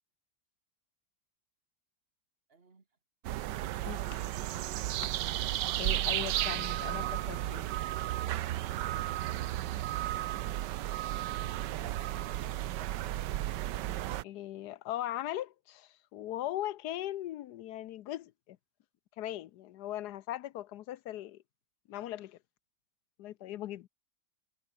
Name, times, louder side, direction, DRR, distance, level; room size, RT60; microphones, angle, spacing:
voice 1, 2.5-2.8 3.3-5.0 11.4-12.9, right 4 dB, 35° right, 2.3 m, -58 dB
sound 1, 3.2-14.2, right 14 dB, 85° right, 1.4 m, -34 dB
voice 2, 3.9-4.2 5.8-7.7 11.8-11.9 14.2-18.6 19.2-21.4 21.9-22.4 23.2-23.9, left 13 dB, 75° left, 1.2 m, -39 dB
omnidirectional pair, 1.8 m